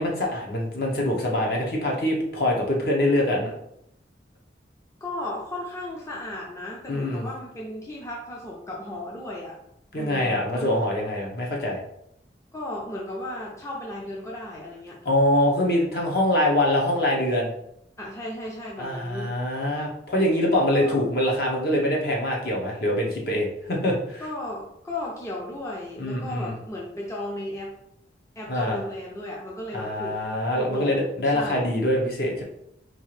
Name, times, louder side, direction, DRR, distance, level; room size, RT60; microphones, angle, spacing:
voice 1, 0.0-3.5 6.9-7.3 9.9-11.8 15.0-17.5 18.8-24.2 26.0-26.5 28.5-28.8 29.7-32.4, left 1 dB, 55° left, -2 dB, 0.9 m, -24 dB
voice 2, 5.0-9.6 9.9-10.8 12.5-15.0 18.0-19.6 20.7-21.0 24.2-27.7 28.4-30.2 30.6-31.7, left 1 dB, 15° left, -4 dB, 0.5 m, -35 dB
4.4 x 2.5 x 3.2 m, 0.75 s
head